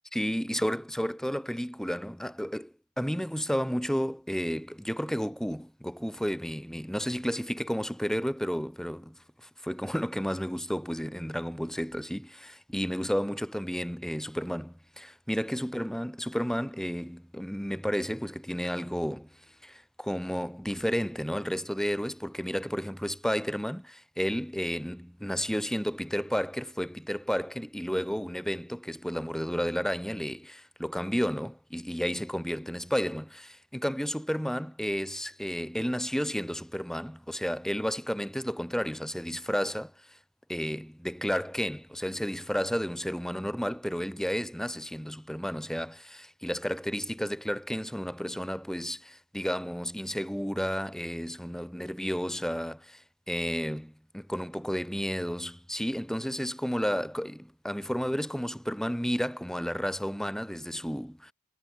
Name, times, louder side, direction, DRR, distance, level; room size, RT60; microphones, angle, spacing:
voice 1, 0.1-9.2 9.4-19.3 19.6-40.2 40.5-61.3, equal, ahead, 4.7 m, -32 dB
head